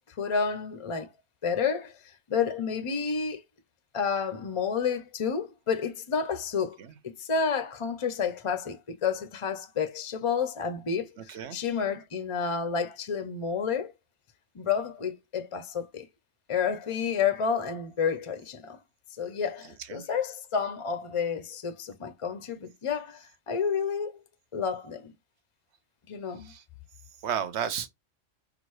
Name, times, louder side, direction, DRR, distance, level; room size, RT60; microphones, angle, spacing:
voice 1, 0.2-1.1 1.4-1.9 2.3-3.4 3.9-6.8 7.0-13.9 14.5-16.1 16.5-18.8 19.1-24.2 24.5-25.1 26.1-26.5, left 6 dB, 40° left, 0.4 m, -30 dB
voice 2, 11.2-11.6 19.6-20.1 26.4-26.6 27.2-27.9, right 8 dB, 65° right, 0.9 m, -34 dB
5.8 x 2.4 x 3.1 m
omnidirectional pair, 1.3 m